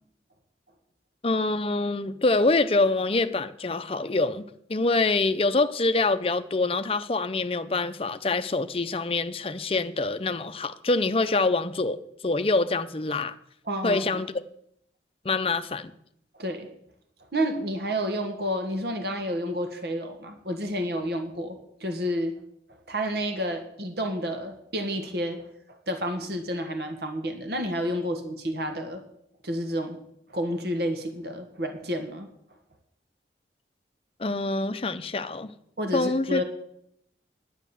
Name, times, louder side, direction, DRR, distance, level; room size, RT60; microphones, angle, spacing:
voice 1, 1.2-13.4 13.8-14.3 15.2-15.9 34.2-35.5 35.9-36.4, left 3 dB, 30° left, 0.6 m, -25 dB
voice 2, 13.6-14.2 16.3-16.7 17.3-22.3 22.9-29.0 29.4-30.0 30.3-32.3 35.8-36.4, equal, 65° right, 1.5 m, -30 dB
10.5 x 9.4 x 7.1 m
head